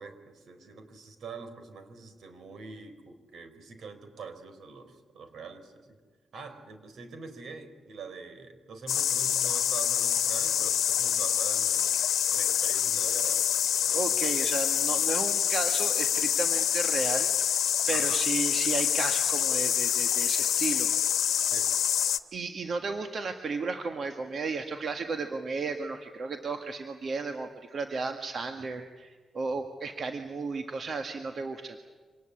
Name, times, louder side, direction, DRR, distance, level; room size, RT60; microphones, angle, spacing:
voice 1, 0.0-6.0 6.3-11.9 12.3-13.4 13.8-14.3 17.9-18.2 21.5-21.7, right 4 dB, 80° right, 9 dB, 4.1 m, -44 dB
sound 1, 8.9-22.2, left 9 dB, 90° left, 1.1 m, -26 dB
voice 2, 13.9-17.3 17.9-20.9 22.3-31.8, right 4 dB, 55° right, 6 dB, 1.7 m, -34 dB
26.0 x 19.5 x 8.6 m, 1.5 s
cardioid pair, 105°, 0 cm